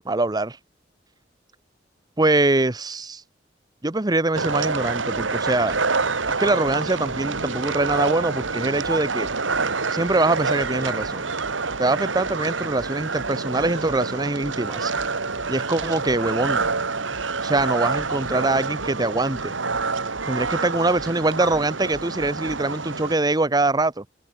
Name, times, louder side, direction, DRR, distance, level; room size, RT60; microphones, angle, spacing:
voice 1, 0.0-0.6 2.2-3.2 3.8-5.7 6.4-9.3 9.9-11.3 11.8-14.9 15.5-16.6 17.4-19.5 20.2-24.1, right 2 dB, 20° right, 1.0 m, -23 dB
sound 1, 4.3-23.1, right 4 dB, 85° right, 2.2 m, -27 dB
sound 2, 5.7-5.9 6.2-7.5 7.9-8.0 8.4-9.7 10.0-10.2 10.6-11.9 12.2-16.2 16.6-22.6, equal, 50° right, 6.2 m, -47 dB
open air
head